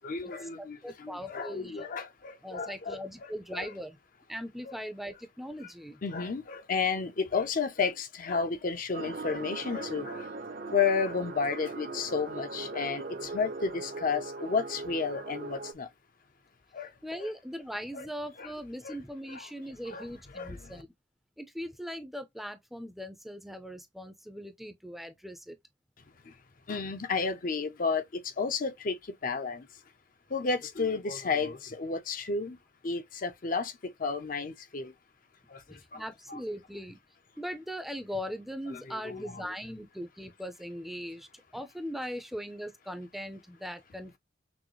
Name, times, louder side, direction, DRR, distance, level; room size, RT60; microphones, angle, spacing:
voice 1, 0.0-3.7 4.6-4.8 6.0-10.3 10.7-15.9 16.7-16.9 17.2-17.3 17.9-18.1 18.4-18.5 18.8-19.0 19.3-19.5 19.9-20.1 20.3-20.8 26.7-29.7 30.3-32.6 32.8-34.9 35.5-36.0 36.3-36.4 38.7-39.5, left 5 dB, 45° left, 0.6 m, -32 dB
voice 2, 0.6-1.9 2.4-4.0 4.3-6.0 17.0-20.9 21.4-25.6 35.9-37.0 37.4-41.3 41.5-44.2, equal, ahead, 0.5 m, -40 dB
sound 1, 8.9-15.7, right 3 dB, 50° right, 0.7 m, -40 dB
6.1 x 2.1 x 3.1 m
head